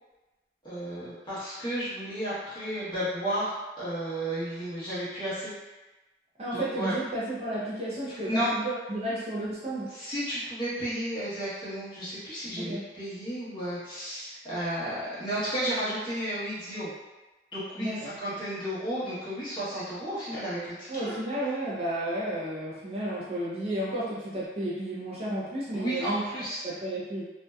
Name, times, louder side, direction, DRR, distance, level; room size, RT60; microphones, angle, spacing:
voice 1, 0.6-5.5 6.5-6.9 8.3-8.5 9.9-16.9 17.5-21.1 25.7-26.6, equal, 25° left, -11 dB, 0.9 m, -33 dB
voice 2, 6.4-9.9 12.6-12.8 17.8-18.1 20.9-26.2 26.6-27.2, right 1 dB, 35° right, -7 dB, 0.4 m, -32 dB
2.6 x 2.1 x 2.3 m, 1.1 s
head